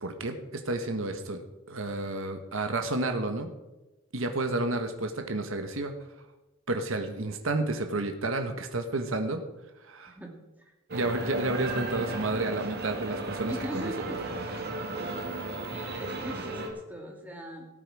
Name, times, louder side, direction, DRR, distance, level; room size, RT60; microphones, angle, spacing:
voice 1, 0.0-3.5 4.1-5.9 6.7-9.4 9.8-10.1 10.9-13.9, right 2 dB, 75° right, 6 dB, 1.4 m, -31 dB
voice 2, 10.1-10.7 13.4-14.2 15.7-17.7, right 1 dB, 10° right, 0 dB, 2.2 m, -40 dB
sound 1, 10.9-16.7, right 2 dB, 50° right, 1.9 m, -35 dB
17.0 x 8.9 x 4.8 m, 1.0 s
head